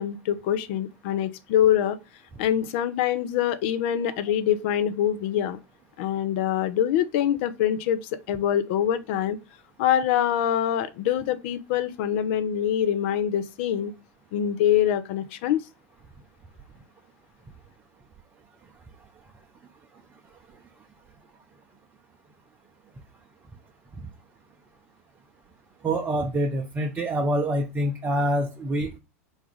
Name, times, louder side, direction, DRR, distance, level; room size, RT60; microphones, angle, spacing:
voice 1, 0.0-2.0 2.4-5.6 6.0-8.0 8.3-9.4 9.8-13.9 14.3-15.6, left 10 dB, 55° left, 0.6 m, -24 dB
voice 2, 25.8-29.0, right 1 dB, 20° right, 0.6 m, -26 dB
4.0 x 2.4 x 4.5 m
figure-of-eight pair, 90°, 8 cm